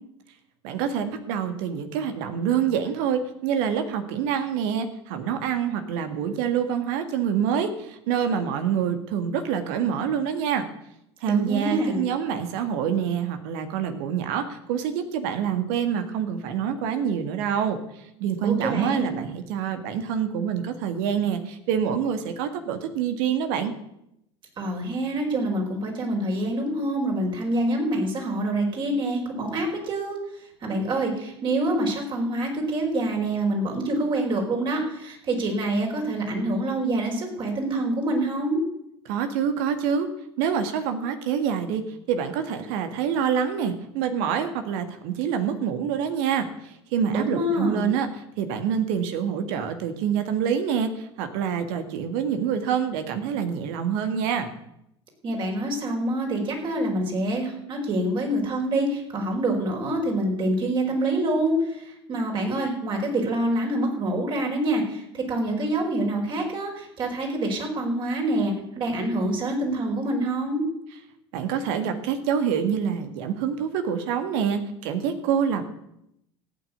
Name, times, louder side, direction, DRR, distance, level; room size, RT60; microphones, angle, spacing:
voice 1, 0.6-10.6 11.2-17.8 18.2-23.7 39.1-40.1 40.4-54.5 71.3-75.6, right 8 dB, 55° right, 8 dB, 1.9 m, -26 dB
voice 2, 11.2-12.1 18.4-19.1 24.6-30.2 30.6-38.6 47.1-47.9 55.2-70.6, right 1 dB, 35° right, 1 dB, 4.9 m, -26 dB
15.0 x 9.2 x 8.5 m, 0.79 s
figure-of-eight pair, 75°, 14 cm